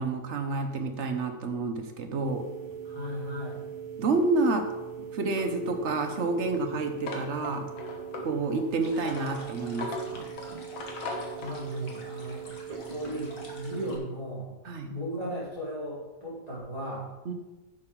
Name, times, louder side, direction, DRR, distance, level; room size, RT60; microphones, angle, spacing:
voice 1, 0.0-2.5 4.0-4.7 5.1-7.7 8.2-10.3 14.6-15.0 17.2-17.3, right 3 dB, 50° right, 5 dB, 0.9 m, -29 dB
sound 1, 2.2-14.0, right 7 dB, 30° right, 0.8 m, -41 dB
voice 2, 2.8-3.6 11.4-12.5 12.9-14.6 14.9-17.1, equal, 20° left, -8 dB, 3.7 m, -36 dB
sound 2, 5.4-11.6, left 2 dB, 90° left, 2.0 m, -40 dB
sound 3, 8.8-14.0, left 1 dB, 50° left, 1.8 m, -49 dB
10.0 x 7.9 x 3.7 m, 1.1 s
omnidirectional pair, 2.0 m